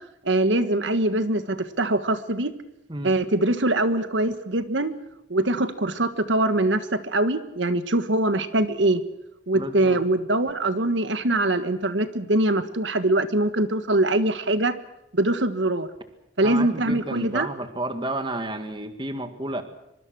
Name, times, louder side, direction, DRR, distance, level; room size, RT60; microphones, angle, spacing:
voice 1, 0.2-2.5 3.0-4.9 5.3-9.0 9.5-14.7 15.1-15.9 16.4-17.5, right 2 dB, 80° right, 11 dB, 1.6 m, -23 dB
voice 2, 9.5-10.0 16.4-19.6, right 2 dB, 25° right, 8 dB, 1.9 m, -31 dB
24.0 x 24.0 x 6.4 m, 0.84 s
head